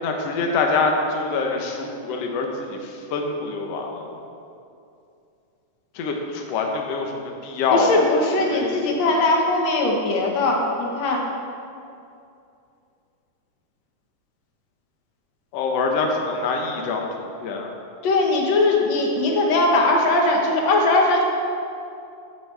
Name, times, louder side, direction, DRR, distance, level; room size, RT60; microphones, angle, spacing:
voice 1, 0.0-4.2 5.9-8.1 8.5-9.1 15.5-17.7, left 4 dB, 85° left, 1 dB, 1.4 m, -25 dB
voice 2, 7.7-11.2 18.0-21.2, left 2 dB, 55° left, 0 dB, 2.1 m, -20 dB
15.5 x 10.0 x 3.4 m, 2.5 s
omnidirectional pair, 4.3 m